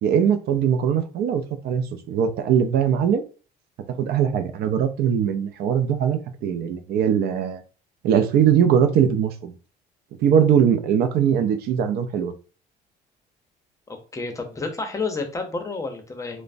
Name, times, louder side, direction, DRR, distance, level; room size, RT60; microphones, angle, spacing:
voice 1, 0.0-3.2 3.9-7.6 8.0-9.5 10.2-12.3, right 8 dB, 70° right, 0.4 m, -21 dB
voice 2, 13.9-16.4, left 3 dB, 20° left, 0.6 m, -30 dB
3.1 x 2.0 x 2.5 m
cardioid pair, 110°, 17 cm